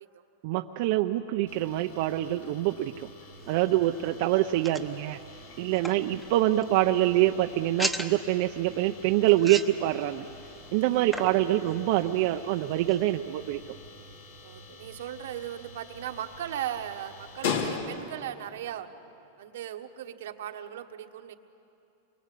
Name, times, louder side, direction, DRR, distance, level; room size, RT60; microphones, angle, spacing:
voice 1, 0.4-3.1 3.5-5.2 5.6-10.3 10.7-13.6, right 14 dB, 55° right, 5 dB, 0.7 m, -25 dB
sound 1, 1.5-18.3, left 5 dB, 75° left, 2.6 m, -42 dB
sound 2, 3.4-13.2, equal, 5° left, 1.1 m, -41 dB
voice 2, 10.9-11.3 14.4-18.9 19.4-21.3, right 10 dB, 80° right, 5 dB, 1.5 m, -38 dB
28.0 x 23.5 x 8.4 m, 2.8 s
supercardioid pair, 150°, 0 cm